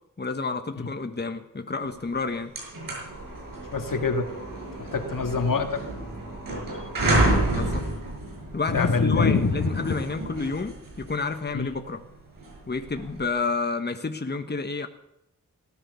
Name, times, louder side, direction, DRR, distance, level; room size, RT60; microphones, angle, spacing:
voice 1, 0.2-2.5 7.4-7.9 8.5-12.0 12.7-14.9, left 4 dB, 30° left, 7 dB, 1.4 m, -30 dB
sound 1, 2.0-2.1 2.4-13.3, right 2 dB, 90° right, 6.0 m, -30 dB
voice 2, 3.7-4.3 4.8-5.8 8.7-9.9 11.5-11.7, left 4 dB, 75° left, 5 dB, 2.2 m, -25 dB
18.5 x 11.5 x 7.0 m, 0.83 s
cardioid pair, 60°, 33 cm